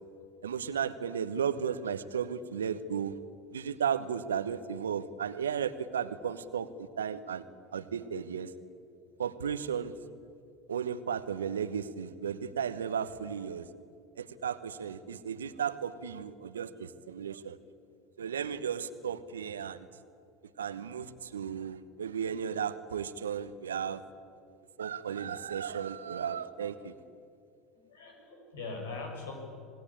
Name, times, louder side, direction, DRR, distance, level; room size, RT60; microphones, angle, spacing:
voice 1, 0.4-3.2 3.5-7.4 7.7-8.5 9.2-9.9 10.7-13.7 14.2-17.6 18.2-19.9 20.6-24.0 24.8-26.9, right 7 dB, 80° right, 13 dB, 1.1 m, -34 dB
voice 2, 27.9-29.4, left 3 dB, 75° left, 2 dB, 6.6 m, -41 dB
26.5 x 20.0 x 8.8 m, 2.4 s
figure-of-eight pair, 70°, 0 cm